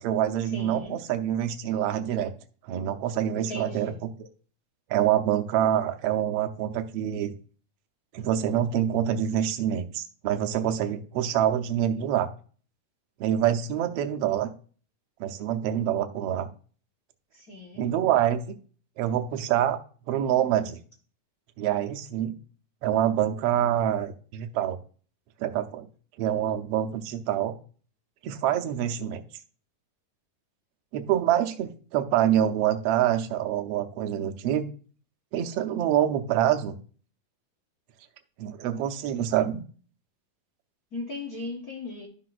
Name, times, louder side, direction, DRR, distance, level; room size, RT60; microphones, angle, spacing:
voice 1, 0.0-2.3 2.6-3.9 4.2-4.3 4.9-7.3 8.1-12.3 13.2-14.5 15.2-16.5 17.8-18.4 19.0-19.8 20.1-20.8 21.6-22.3 22.8-24.8 25.4-25.9 26.2-27.5 28.2-29.2 30.9-34.6 35.3-36.8 38.4-39.6, right 11 dB, 75° right, 1.4 m, -26 dB
voice 2, 0.5-1.0 3.3-4.0 17.3-17.9 40.9-42.1, left 3 dB, 70° left, 0.8 m, -38 dB
12.5 x 5.9 x 2.5 m
omnidirectional pair, 3.7 m